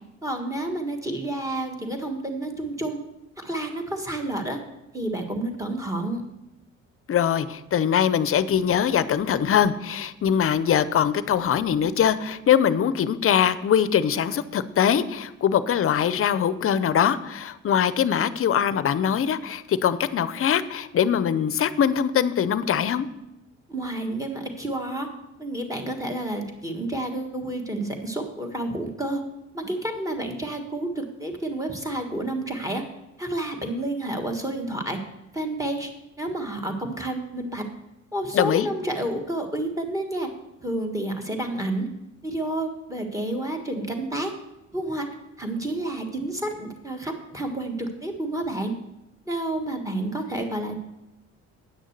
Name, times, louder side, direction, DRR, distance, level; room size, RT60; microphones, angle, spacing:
voice 1, 0.2-3.0 3.4-4.6 4.9-6.2 23.7-25.1 25.4-29.2 29.5-32.8 33.2-35.0 35.3-35.9 36.2-37.6 38.1-40.3 40.6-41.9 42.2-44.3 44.7-45.1 45.4-48.7 49.3-50.8, right 1 dB, 10° right, 4 dB, 1.7 m, -30 dB
voice 2, 7.1-23.1 38.3-38.7, left 8 dB, 45° left, 14 dB, 0.6 m, -22 dB
9.2 x 6.4 x 6.6 m, 0.93 s
cardioid pair, 90°, 30 cm